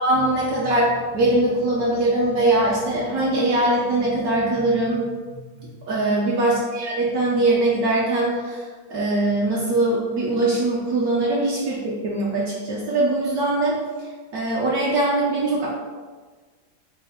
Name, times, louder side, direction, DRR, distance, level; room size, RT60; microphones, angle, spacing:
voice 1, 0.0-15.7, right 2 dB, 70° right, -5 dB, 1.0 m, -22 dB
4.0 x 2.0 x 3.5 m, 1.4 s
omnidirectional pair, 1.8 m